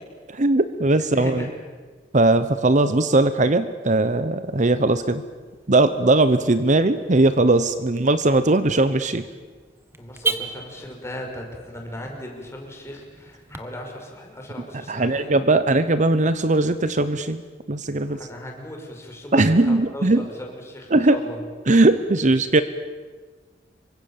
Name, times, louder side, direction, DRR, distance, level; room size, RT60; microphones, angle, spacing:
voice 1, 0.3-1.4 2.1-5.2 5.7-9.2 14.9-17.4 17.7-18.2 19.3-20.3 20.9-21.2 21.7-22.6, right 2 dB, 45° right, 12 dB, 0.9 m, -19 dB
voice 2, 1.1-1.5 10.0-15.4 18.1-21.4, equal, 15° left, 1 dB, 5.6 m, -37 dB
Car / Alarm, 4.4-13.6, right 3 dB, 15° right, 1.7 m, -37 dB
27.0 x 24.0 x 7.4 m, 1.4 s
head